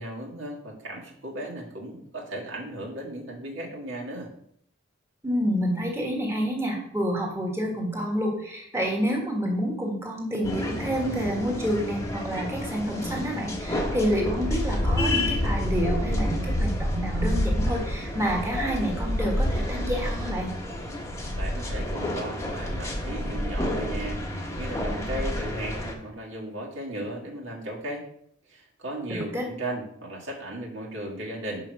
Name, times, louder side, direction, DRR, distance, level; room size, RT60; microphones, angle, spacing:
voice 1, 0.0-4.3 21.4-28.0 28.5-31.7, right 1 dB, 65° right, -2 dB, 1.8 m, -36 dB
voice 2, 5.2-20.5 29.1-29.5, equal, 15° right, 0 dB, 1.6 m, -28 dB
sound 1, 10.4-25.9, left 1 dB, 15° left, 1.0 m, -29 dB
5.6 x 5.0 x 6.3 m, 0.69 s
head